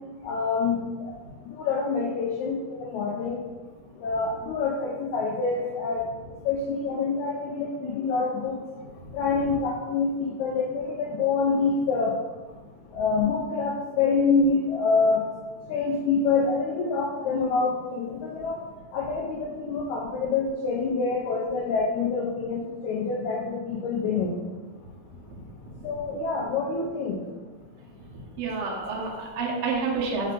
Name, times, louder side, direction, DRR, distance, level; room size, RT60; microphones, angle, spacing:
voice 1, 0.2-1.1 1.5-3.4 4.0-6.0 6.4-8.6 9.1-12.1 12.9-15.2 15.7-18.5 18.9-24.3 25.8-27.2, left 4 dB, 90° left, -3 dB, 1.6 m, -26 dB
voice 2, 28.4-30.3, right 4 dB, 85° right, -2 dB, 1.4 m, -29 dB
5.4 x 2.4 x 3.7 m, 1.3 s
omnidirectional pair, 3.9 m